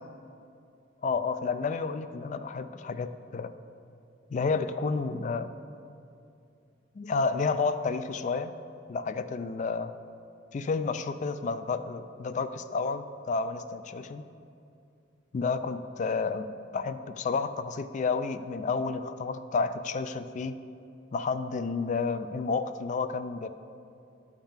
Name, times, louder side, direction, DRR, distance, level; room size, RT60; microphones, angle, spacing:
voice 1, 1.0-3.5 4.3-5.5 7.0-8.5 8.9-9.9 10.5-14.2 15.3-20.6 21.1-23.5, left 4 dB, 40° left, 11 dB, 0.3 m, -30 dB
10.5 x 3.6 x 7.2 m, 2.5 s
head